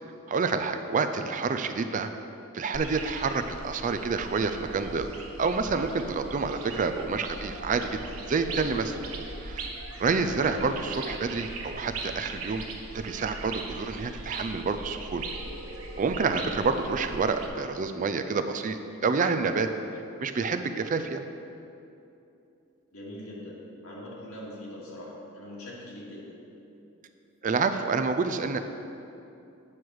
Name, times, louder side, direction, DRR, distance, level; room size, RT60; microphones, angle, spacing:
voice 1, 0.3-2.1 2.5-5.1 5.4-8.0 8.3-9.0 9.4-9.7 10.0-12.6 12.9-15.2 16.0-19.7 20.2-21.2 27.4-28.6, right 4 dB, 35° right, 8 dB, 0.4 m, -28 dB
sound 1, 2.7-17.5, right 3 dB, 80° right, 1.0 m, -40 dB
voice 2, 10.3-10.7 22.9-26.2, left 1 dB, 80° left, -5 dB, 2.0 m, -42 dB
8.7 x 6.2 x 4.7 m, 2.7 s
head